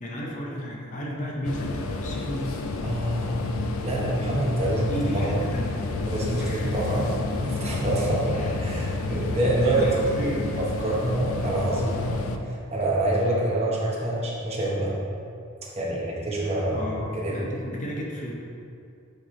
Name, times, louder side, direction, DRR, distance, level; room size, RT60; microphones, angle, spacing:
voice 1, 0.0-2.6 4.9-5.9 6.4-6.8 8.3-8.7 8.9-10.6 16.7-18.3, equal, 35° left, -2 dB, 0.7 m, -33 dB
sound 1, 1.4-12.4, left 3 dB, 70° left, 0.5 m, -31 dB
voice 2, 2.8-3.4 3.8-5.4 6.1-7.1 7.3-10.3 10.6-14.9 15.8-17.5, right 1 dB, 30° right, -5 dB, 1.1 m, -26 dB
9.8 x 3.3 x 3.8 m, 2.5 s
head